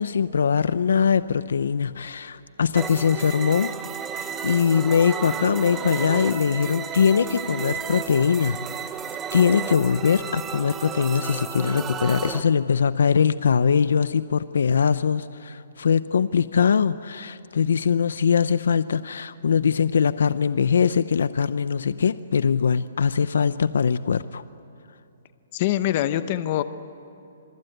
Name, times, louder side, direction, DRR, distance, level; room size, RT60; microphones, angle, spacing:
voice 1, 0.0-3.7 4.2-8.6 9.3-24.4, left 6 dB, 80° left, 14 dB, 0.7 m, -22 dB
sound 1, 2.7-12.4, right 7 dB, 15° right, 0.9 m, -33 dB
voice 2, 25.5-26.6, left 13 dB, 35° left, 12 dB, 0.9 m, -24 dB
26.0 x 23.5 x 9.2 m, 2.9 s
hypercardioid pair, 165°, 0 cm